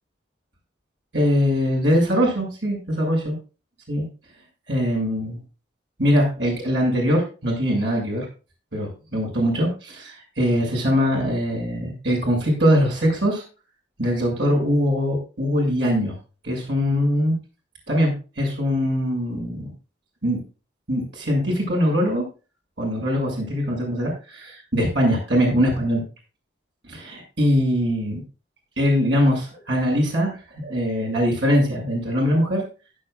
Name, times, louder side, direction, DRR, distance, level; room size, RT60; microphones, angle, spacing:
voice 1, 1.1-3.3 3.9-4.0 4.7-5.4 6.0-8.3 8.7-13.4 14.0-16.1 16.4-17.3 17.9-19.7 20.2-20.4 20.9-22.2 22.8-26.0 26.9-28.2 28.8-30.3 30.6-32.6, equal, 80° right, -1 dB, 6.9 m, -22 dB
16.5 x 9.8 x 2.5 m, 0.33 s
head